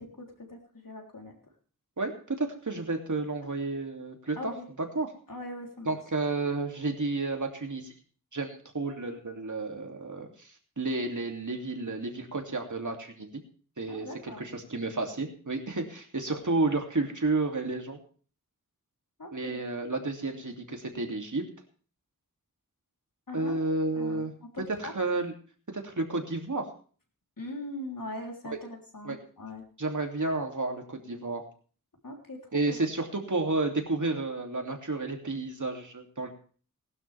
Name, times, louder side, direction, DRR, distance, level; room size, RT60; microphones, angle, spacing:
voice 1, 0.0-1.3 4.4-4.7 5.3-6.0 13.9-14.4 19.2-19.6 23.3-23.6 23.9-24.9 27.4-29.6 32.0-32.4 32.7-32.8, left 1 dB, 80° left, 1 dB, 3.6 m, -41 dB
voice 2, 2.0-4.5 4.9-5.1 5.9-7.9 8.3-10.5 10.8-13.3 13.8-18.0 19.3-21.4 23.3-24.3 24.8-25.3 25.7-26.7 28.4-28.6 29.0-29.2 29.8-31.4 32.5-36.3, right 3 dB, 65° right, 2 dB, 2.8 m, -31 dB
19.5 x 12.0 x 3.5 m, 0.41 s
wide cardioid pair, 55°, 33 cm